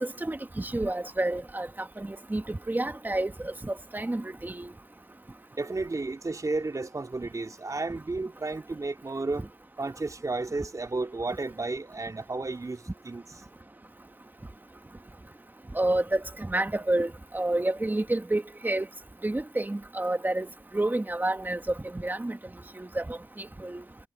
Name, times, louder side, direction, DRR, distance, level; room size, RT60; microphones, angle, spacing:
voice 1, 0.0-1.7 2.0-4.7 15.7-18.9 19.2-20.5 20.7-21.6 21.9-22.4 22.8-23.8, right 2 dB, 20° right, 2.1 m, -29 dB
voice 2, 5.6-9.5 9.8-13.2, right 3 dB, 35° right, 3.2 m, -32 dB
cardioid pair, 55°, 10 cm